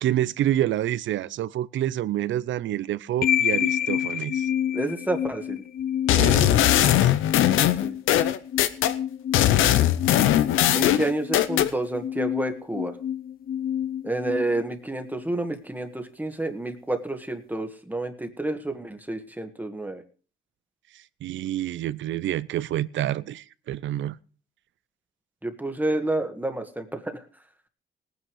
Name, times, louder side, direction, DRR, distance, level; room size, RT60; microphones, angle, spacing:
voice 1, 0.0-4.5 6.2-7.1 21.2-24.2, right 12 dB, 70° right, 0.6 m, -28 dB
sound 1, 3.2-15.3, left 9 dB, 50° left, 0.6 m, -29 dB
voice 2, 4.7-5.6 6.1-6.6 7.8-8.0 10.7-13.0 14.0-20.0 25.4-27.2, right 2 dB, 10° right, 1.7 m, -29 dB
sound 2, 6.1-8.9 9.3-11.7, left 12 dB, 85° left, 0.8 m, -20 dB
18.5 x 9.4 x 4.8 m
cardioid pair, 90°, 20 cm